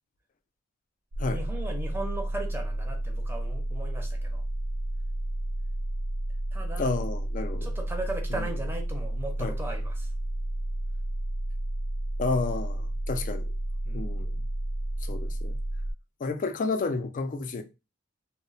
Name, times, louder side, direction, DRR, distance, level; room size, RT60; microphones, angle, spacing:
sound 1, 1.1-15.9, right 1 dB, 50° right, 0.4 m, -31 dB
voice 1, 1.3-4.4 6.5-6.9 7.6-10.1 13.9-14.0, right 2 dB, 10° right, 0.6 m, -37 dB
voice 2, 6.8-7.7 8.3-8.5 9.4-9.6 12.2-13.5 13.9-14.4 15.0-15.6 16.2-17.6, left 3 dB, 40° left, 0.4 m, -31 dB
2.1 x 2.1 x 3.8 m
head